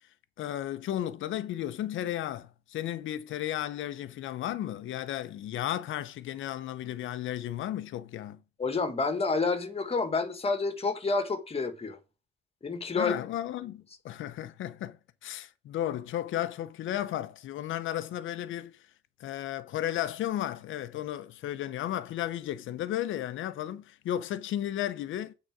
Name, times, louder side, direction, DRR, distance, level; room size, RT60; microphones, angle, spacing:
voice 1, 0.4-8.4 13.0-18.8 19.2-25.3, left 12 dB, 80° left, 0.8 m, -34 dB
voice 2, 8.6-12.0 12.6-13.1, left 4 dB, 30° left, 1.6 m, -29 dB
8.9 x 4.1 x 6.1 m
cardioid pair, 90°, 20 cm